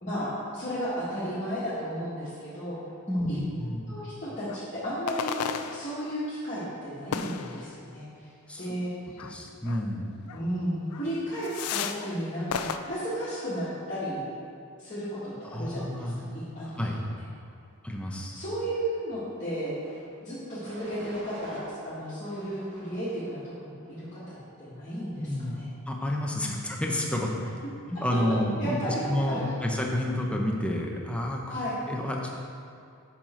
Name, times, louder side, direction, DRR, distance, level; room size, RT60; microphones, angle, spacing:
voice 1, 0.0-2.8 3.3-3.4 3.9-5.4 5.7-8.3 8.6-8.9 10.3-14.2 14.8-16.8 18.3-19.7 20.2-25.6 28.6-29.4 31.5-31.8, equal, 35° left, -12 dB, 1.7 m, -34 dB
voice 2, 3.1-3.9 8.5-8.7 9.2-10.1 15.5-16.2 16.8-17.0 17.8-18.4 25.2-25.6 25.9-27.3 27.9-31.4 31.9-32.3, left 1 dB, 5° left, -1 dB, 0.7 m, -29 dB
sound 1, 4.5-4.7 5.1-6.3 7.1-8.0 9.2-9.3 9.7-9.8 10.3-10.4 10.9-11.1 11.4-12.2 12.5-12.8, left 7 dB, 90° left, 0.4 m, -34 dB
sound 2, 19.7-20.1 20.6-21.7 22.2-23.3 23.8-24.3, right 1 dB, 50° right, 1.7 m, -46 dB
7.5 x 5.7 x 4.4 m, 2.5 s
head